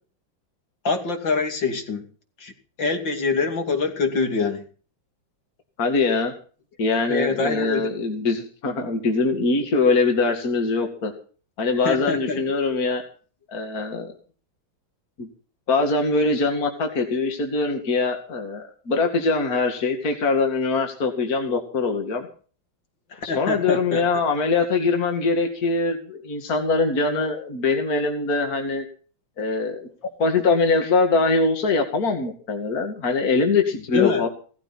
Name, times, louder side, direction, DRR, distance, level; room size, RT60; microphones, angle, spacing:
voice 1, 0.8-2.0 2.4-2.5 2.8-4.6 7.1-7.9 11.8-12.4 23.1-24.0 33.9-34.2, left 4 dB, 65° left, 5 dB, 3.3 m, -24 dB
voice 2, 5.8-6.3 6.8-11.1 11.6-13.0 13.5-14.1 15.2-15.3 15.7-22.3 23.2-28.9 29.4-29.9 30.2-34.3, left 3 dB, 45° left, 4 dB, 2.7 m, -22 dB
17.5 x 15.0 x 4.2 m, 0.40 s
omnidirectional pair, 2.2 m